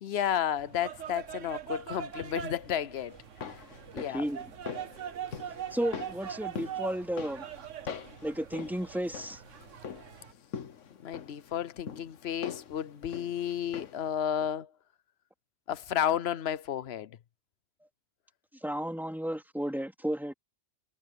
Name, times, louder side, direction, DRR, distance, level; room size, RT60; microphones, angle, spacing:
voice 1, 0.0-3.2 3.9-4.2 11.0-14.7 15.7-17.1, left 10 dB, 65° left, 0.9 m, -32 dB
sound 1, 0.6-10.3, right 9 dB, 85° right, 1.3 m, -42 dB
sound 2, 3.1-14.1 14.4-14.5, left 7 dB, 85° left, 1.4 m, -44 dB
voice 2, 3.9-4.4 5.7-7.4 8.2-9.4 18.6-20.3, equal, ahead, 2.7 m, -33 dB
omnidirectional pair, 1.2 m